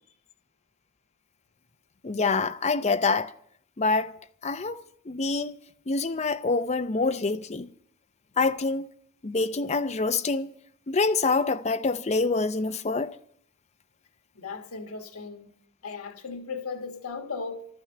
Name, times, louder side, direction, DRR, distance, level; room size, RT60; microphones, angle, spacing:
voice 1, 2.0-3.3 3.8-4.1 4.4-5.6 5.9-7.7 8.4-8.9 9.2-10.5 10.9-13.2, left 3 dB, 30° left, 0.6 m, -26 dB
voice 2, 14.4-15.5 15.8-17.7, left 4 dB, 90° left, 1.3 m, -36 dB
13.0 x 12.5 x 6.8 m
head